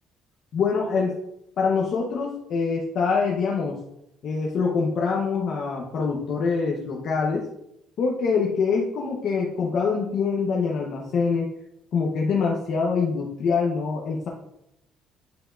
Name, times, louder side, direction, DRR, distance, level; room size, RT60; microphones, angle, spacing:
voice 1, 0.5-1.1 1.6-3.8 4.2-7.4 8.0-11.5 11.9-14.3, left 5 dB, 45° left, -2 dB, 0.9 m, -24 dB
9.1 x 5.6 x 2.5 m, 0.81 s
cardioid pair, 175°, 0 cm